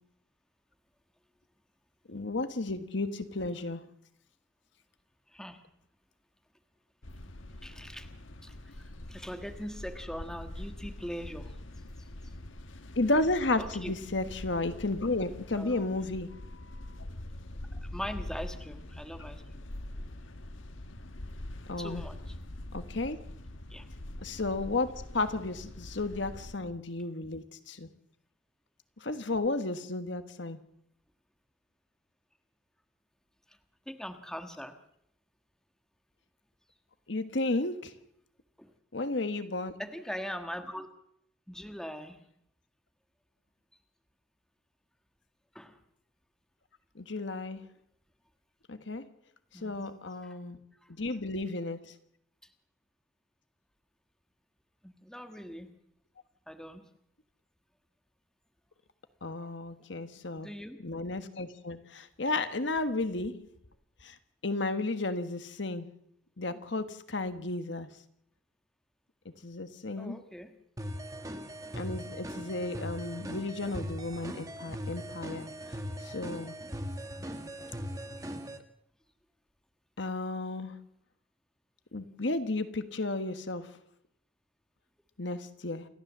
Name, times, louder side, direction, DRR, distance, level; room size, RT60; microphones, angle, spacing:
voice 1, 2.1-3.8 12.9-16.4 21.7-22.0 22.7-23.2 24.2-27.9 29.0-30.6 37.1-37.9 38.9-39.7 46.9-47.6 48.7-49.0 49.6-50.6 50.9-51.8 59.2-60.5 60.8-63.5 64.0-64.1 64.4-65.9 66.4-67.9 69.4-70.2 71.8-76.5 80.0-80.7 81.9-83.7 85.2-85.9, left 2 dB, 65° left, 10 dB, 1.4 m, -33 dB
voice 2, 5.3-5.6 7.6-8.1 8.4-11.6 13.6-13.9 15.5-15.8 17.7-19.6 21.8-22.3 23.7-23.9 33.5-33.6 33.9-34.8 38.6-38.7 39.8-40.9 41.5-42.2 45.5-45.8 49.5-49.9 50.2-50.4 50.8-50.9 54.8-55.7 56.5-56.8 60.3-60.8 70.0-70.5 77.2-77.5, equal, 5° left, 6 dB, 1.5 m, -41 dB
sound 1, 7.0-26.6, left 1 dB, 85° left, 1.4 m, -44 dB
sound 2, 70.8-78.6, equal, 20° right, 1.6 m, -40 dB
28.5 x 13.0 x 7.4 m, 0.74 s
head